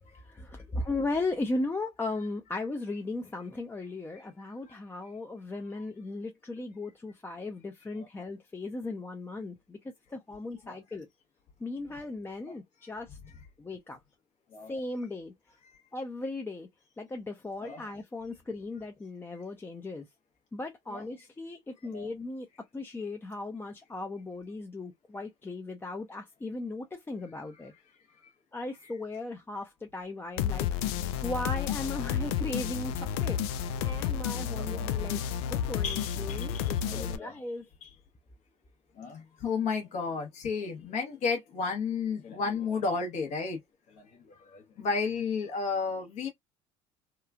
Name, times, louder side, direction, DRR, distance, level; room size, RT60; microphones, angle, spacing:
voice 1, 0.2-11.1 11.6-13.2 13.6-14.0 14.7-15.3 15.9-16.7 17.0-20.1 20.5-22.5 22.7-27.7 28.5-30.9 31.2-37.7, left 2 dB, 15° left, 0.5 m, -37 dB
sound 1, 30.4-37.2, left 8 dB, 75° left, 0.4 m, -31 dB
voice 2, 34.4-34.9 35.8-37.3 37.8-37.9 39.0-43.6 43.9-46.3, left 5 dB, 55° left, 1.1 m, -33 dB
2.9 x 2.3 x 2.3 m
hypercardioid pair, 80°, 14 cm